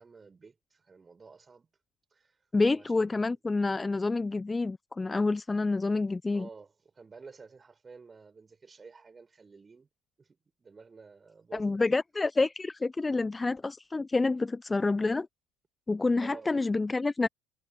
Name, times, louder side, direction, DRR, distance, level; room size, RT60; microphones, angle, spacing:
voice 1, 0.0-1.7 2.1-2.4 2.7-3.3 6.3-9.9 10.2-10.3 10.6-11.8 16.2-16.5, right 4 dB, 20° right, 5.8 m, -51 dB
voice 2, 2.5-6.5 11.5-15.3 15.9-17.3, left 3 dB, 15° left, 1.0 m, -28 dB
figure-of-eight pair, 65°, 0 cm